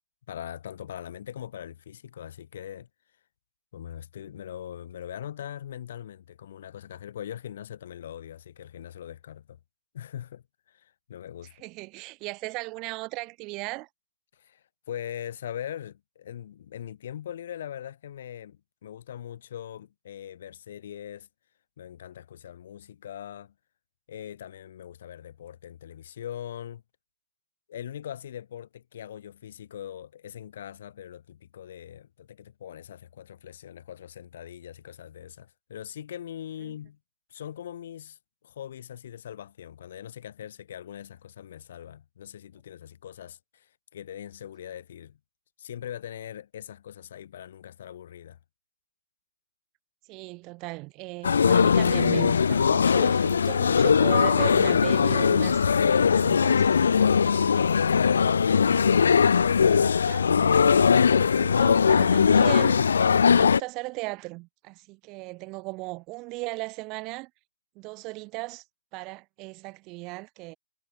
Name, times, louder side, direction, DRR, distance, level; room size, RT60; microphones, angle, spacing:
voice 1, 0.3-2.9 3.7-9.6 9.9-11.7 14.3-21.3 21.8-23.5 24.1-26.8 27.7-37.0 37.3-38.2 38.4-45.2 45.6-48.4, left 10 dB, 55° left, 4.6 m, -41 dB
voice 2, 11.6-13.9 50.1-57.8 59.6-62.8 63.4-67.3 67.8-68.6 68.9-70.6, right 25 dB, 25° right, 3.7 m, -37 dB
sound 1, 51.2-63.6, left 6 dB, 90° left, 0.5 m, -20 dB
hypercardioid pair, 155°, 0 cm